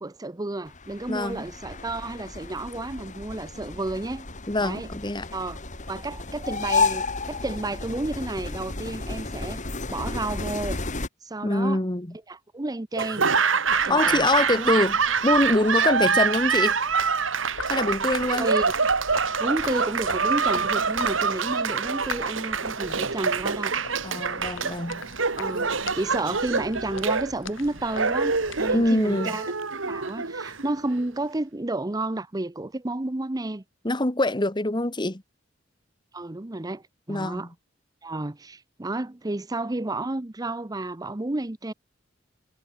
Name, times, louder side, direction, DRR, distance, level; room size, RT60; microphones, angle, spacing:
voice 1, 0.0-4.3 4.6-4.9 5.3-5.6 5.9-9.6 9.9-10.8 11.2-11.8 12.3-13.3 13.8-14.2 14.5-14.7 18.4-18.7 19.4-23.7 25.4-29.5 29.8-33.6 36.1-37.5 38.0-41.7, right 2 dB, 20° right, 0.7 m, -31 dB
sound 1, 0.7-11.1, left 4 dB, 40° left, 3.3 m, -32 dB
voice 2, 1.1-1.4 4.5-5.3 11.4-12.2 13.9-15.0 15.2-16.8 17.7-18.5 24.0-25.0 28.7-29.3 33.8-35.2 37.1-37.5, left 2 dB, 25° left, 1.6 m, -24 dB
Laughter / Applause, 13.0-31.0, right 5 dB, 85° right, 2.2 m, -25 dB
sound 2, 13.6-29.0, left 3 dB, 80° left, 8.0 m, -42 dB
head